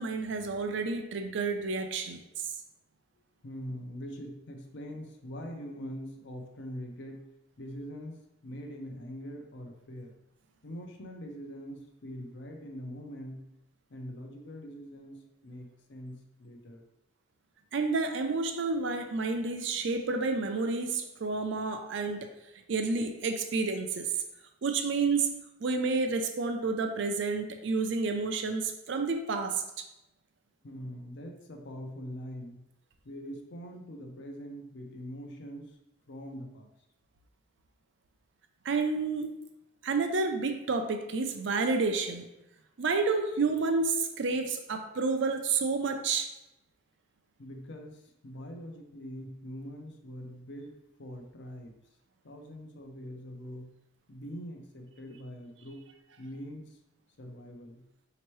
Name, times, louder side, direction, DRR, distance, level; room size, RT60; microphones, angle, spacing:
voice 1, 0.0-2.2 17.7-22.3 22.7-24.1 24.6-29.6 38.7-39.4 39.8-42.3 42.8-46.3, right 4 dB, 65° right, 5 dB, 0.5 m, -30 dB
voice 2, 3.4-7.2 7.6-10.1 10.6-13.4 13.9-15.2 15.4-16.8 30.6-32.6 33.0-35.7 36.1-36.7 47.4-50.7 51.0-51.7 52.2-53.7 54.1-55.8 56.2-56.7 57.2-57.8, equal, 60° left, 3 dB, 0.6 m, -43 dB
4.3 x 2.9 x 3.1 m, 0.89 s
head